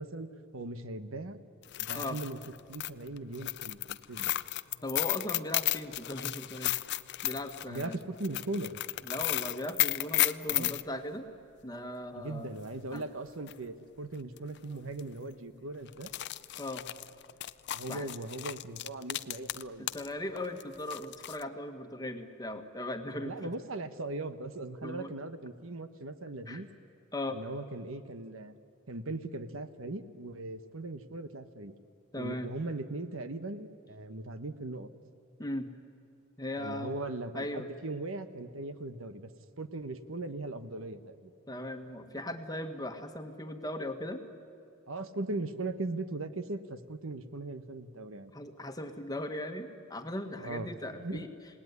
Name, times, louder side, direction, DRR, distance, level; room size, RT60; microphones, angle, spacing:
voice 1, 0.0-1.4 1.8-2.4 2.7-4.3 7.7-8.8 10.5-10.7 12.2-16.1 17.7-19.9 23.1-26.7 27.3-28.5 28.9-31.7 32.2-34.9 36.6-39.3 39.6-41.3 44.9-48.3 50.4-51.3, right 2 dB, 70° right, 10 dB, 1.2 m, -39 dB
sound 1, 1.6-10.8 13.0-13.1 13.5-13.6 14.4-14.6 14.9-15.0 15.9-20.1 20.4-21.4, left 15 dB, 55° left, 0.6 m, -33 dB
voice 2, 4.8-6.7 7.2-8.0 9.0-11.3 11.6-12.5 12.9-13.0 16.6-16.8 17.9-18.1 19.8-23.5 24.8-25.1 26.5-26.6 27.1-27.4 32.1-32.5 35.4-35.7 36.4-37.0 37.3-37.7 41.5-44.2 48.3-51.3, left 1 dB, 20° left, 6 dB, 1.5 m, -38 dB
27.5 x 19.0 x 9.7 m, 2.6 s
head